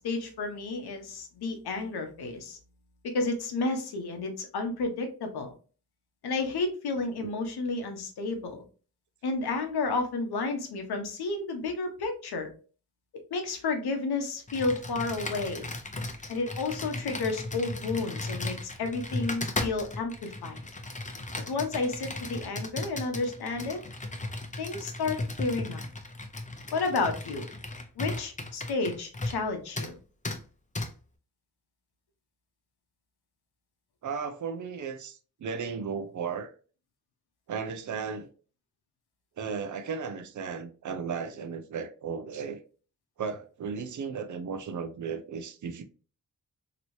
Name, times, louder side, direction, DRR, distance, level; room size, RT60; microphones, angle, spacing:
voice 1, 0.0-2.6 3.0-5.5 6.2-8.6 9.2-12.5 13.3-15.7 16.3-20.6 21.5-23.8 24.6-25.8 26.7-27.5 28.0-30.0, left 3 dB, 85° left, 0.8 m, -31 dB
Computer keyboard, 14.5-29.5 29.8-29.9 30.2-30.4 30.8-30.9, left 2 dB, 20° left, 0.7 m, -36 dB
voice 2, 34.0-36.5 37.5-38.3 39.4-42.6 43.2-45.8, right 6 dB, 50° right, 0.6 m, -35 dB
3.0 x 2.9 x 2.7 m
cardioid pair, 55°, 37 cm